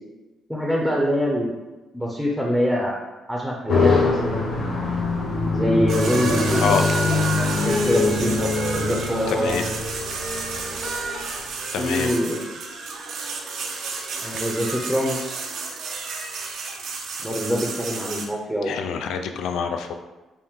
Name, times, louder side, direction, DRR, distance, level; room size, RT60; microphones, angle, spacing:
voice 1, 0.5-1.5 1.9-3.0 3.3-4.5 5.5-6.8 7.6-9.6 11.8-12.4 14.2-15.4 17.2-18.8, equal, ahead, -2 dB, 0.6 m, -24 dB
sound 1, 3.7-11.4, left 3 dB, 60° left, 0.8 m, -24 dB
sound 2, 5.9-18.3, right 4 dB, 70° right, 0.5 m, -30 dB
voice 2, 6.6-6.9 9.3-9.7 11.7-12.1 18.6-19.9, left 6 dB, 80° left, 7 dB, 0.3 m, -26 dB
4.5 x 2.1 x 3.6 m, 1.1 s
cardioid pair, 90°, 0 cm